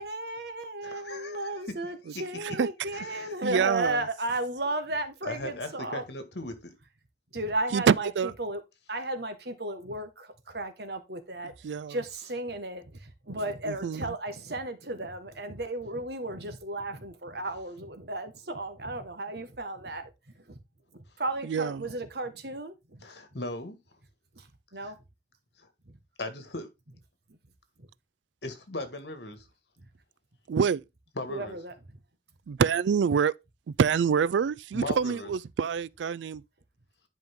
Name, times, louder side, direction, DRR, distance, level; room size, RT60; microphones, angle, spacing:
voice 1, 0.0-6.0 7.3-8.6 8.9-20.1 20.4-20.5 21.2-23.0 24.3-25.0 25.9-26.0 27.3-27.4 27.8-27.9 31.3-31.7, right 2 dB, 70° right, 1.7 m, -34 dB
voice 2, 0.8-1.6 2.9-3.4 5.3-6.7 23.0-23.8 24.8-24.9 25.6-25.7 26.2-26.7 28.4-29.5 31.2-31.6 34.7-35.3, left 2 dB, 75° left, 1.9 m, -38 dB
voice 3, 3.4-4.0 7.7-8.3 11.6-12.0 13.7-14.1 21.4-21.8 30.5-30.8 32.5-33.3 33.8-36.4, right 6 dB, 90° right, 0.4 m, -26 dB
10.5 x 5.2 x 3.7 m
head